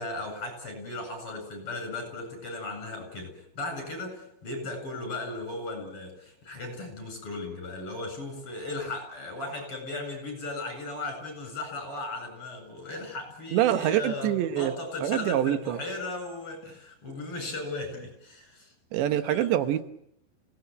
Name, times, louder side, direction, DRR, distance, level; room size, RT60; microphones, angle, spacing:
voice 1, 0.0-18.7 19.2-19.5, left 2 dB, 30° left, 5 dB, 8.9 m, -36 dB
voice 2, 13.5-14.7 15.0-15.8 18.9-19.8, right 12 dB, 75° right, 10 dB, 3.4 m, -25 dB
29.0 x 19.5 x 9.5 m, 0.76 s
omnidirectional pair, 5.3 m